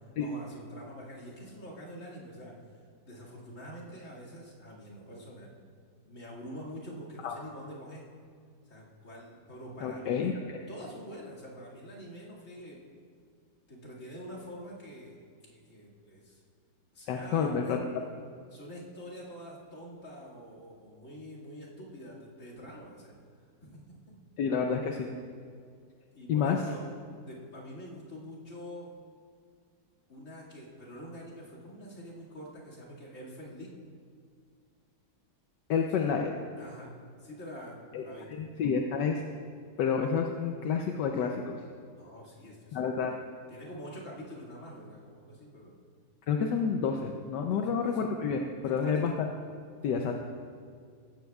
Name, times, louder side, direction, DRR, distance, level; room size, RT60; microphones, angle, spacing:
voice 1, 0.2-2.6 3.0-5.5 6.0-8.0 8.7-10.2 10.7-12.8 13.7-15.2 15.4-16.4 16.9-17.8 18.5-23.2 23.6-23.9 26.1-26.9 27.2-28.9 30.1-33.7 36.0-36.1 36.6-38.4 41.9-42.9 43.5-45.8 47.4-48.0 48.8-49.1, equal, 45° left, -5 dB, 2.5 m, -46 dB
voice 2, 9.8-10.4 17.1-17.8 24.4-25.1 26.3-26.6 35.7-36.3 37.9-38.0 38.4-39.2 39.8-41.6 42.7-43.1 46.3-49.1 49.8-50.1, left 6 dB, 80° left, 3 dB, 1.3 m, -29 dB
16.0 x 13.5 x 2.3 m, 2.2 s
omnidirectional pair, 1.9 m